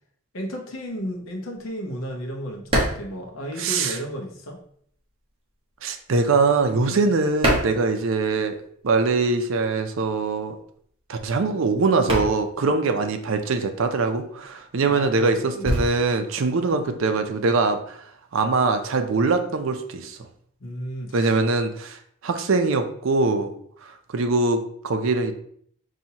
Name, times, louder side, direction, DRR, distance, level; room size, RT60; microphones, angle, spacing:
voice 1, 0.3-4.6 6.8-7.0 14.9-15.7 20.6-21.3, equal, 70° left, 1 dB, 0.9 m, -33 dB
sound 1, 0.9-4.2 4.5-8.6 8.9-17.6, right 1 dB, 25° right, 0.9 m, -30 dB
voice 2, 3.6-4.0 5.8-8.6 8.8-10.6 11.1-18.0 18.3-20.2 21.1-23.5 23.8-25.3, right 3 dB, 65° right, 7 dB, 0.5 m, -23 dB
5.6 x 2.7 x 2.8 m, 0.64 s
head